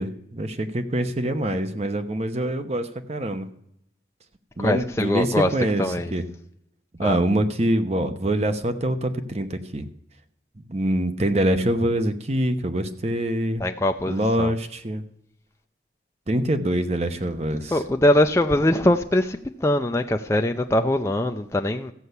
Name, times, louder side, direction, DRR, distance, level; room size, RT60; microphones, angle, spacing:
voice 1, 0.0-3.5 4.6-5.9 6.1-6.2 7.0-9.9 10.7-13.6 14.1-15.0 16.3-17.8, right 1 dB, 35° right, 9 dB, 0.9 m, -24 dB
voice 2, 4.6-5.5 5.8-6.1 7.0-7.2 13.6-14.5 17.7-21.9, left 1 dB, 15° left, 5 dB, 0.5 m, -22 dB
14.5 x 5.6 x 8.1 m, 0.75 s
head